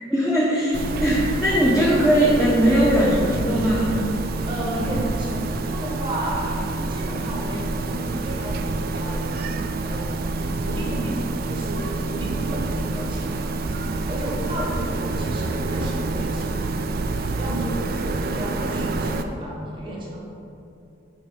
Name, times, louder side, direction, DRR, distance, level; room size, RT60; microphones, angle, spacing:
voice 1, 0.1-4.0, equal, ahead, -7 dB, 0.6 m, -19 dB
sound 1, 0.7-19.2, right 3 dB, 50° right, 0.3 m, -27 dB
voice 2, 4.5-9.6 9.8-11.2 11.5-16.7 17.4-20.2, equal, 25° right, -4 dB, 1.1 m, -33 dB
4.8 x 4.2 x 5.0 m, 2.7 s
head